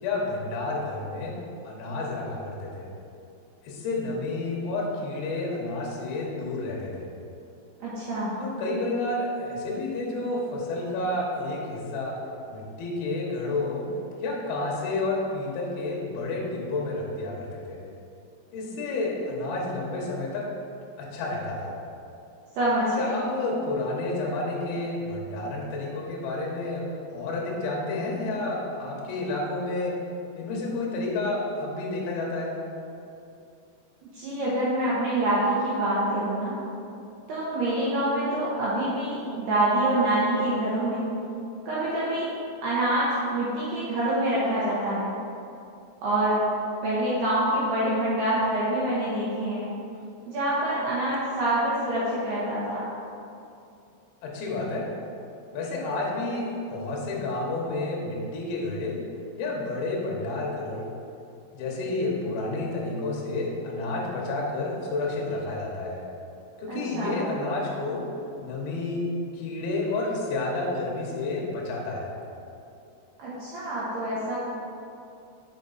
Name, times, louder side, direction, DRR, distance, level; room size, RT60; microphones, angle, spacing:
voice 1, 0.0-1.4 1.6-2.9 3.6-7.1 8.4-12.2 12.5-13.9 14.2-17.9 18.5-20.5 21.0-21.7 23.0-30.0 30.4-32.6 54.2-54.9 55.5-59.0 59.4-60.9 61.5-66.0 66.6-68.0 68.4-69.1 69.3-72.1, left 2 dB, 80° left, -3 dB, 2.2 m, -30 dB
voice 2, 7.8-8.3 22.5-23.1 34.1-36.6 37.3-41.0 41.7-42.3 42.6-45.1 46.0-46.4 46.8-49.6 50.3-52.8 66.7-67.2 73.2-74.4, right 1 dB, 80° right, -8 dB, 2.3 m, -26 dB
6.5 x 5.0 x 4.0 m, 2.7 s
omnidirectional pair, 6.0 m